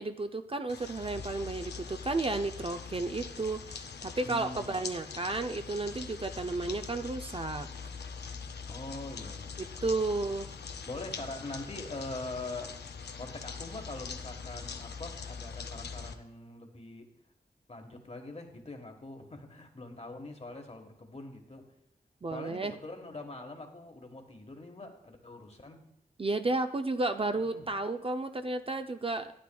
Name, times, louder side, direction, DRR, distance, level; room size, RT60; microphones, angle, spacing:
voice 1, 0.0-7.7 9.6-10.5 22.2-22.7 26.2-29.3, right 2 dB, 35° right, 8 dB, 0.4 m, -32 dB
sound 1, 0.7-16.1, left 5 dB, 85° left, 0.5 m, -43 dB
voice 2, 4.2-4.7 8.7-9.7 10.8-12.7 13.1-17.1 17.7-21.6 22.3-25.8 27.3-27.7, left 2 dB, 40° left, 4 dB, 1.3 m, -43 dB
11.5 x 9.4 x 2.3 m, 0.78 s
wide cardioid pair, 60°, 17 cm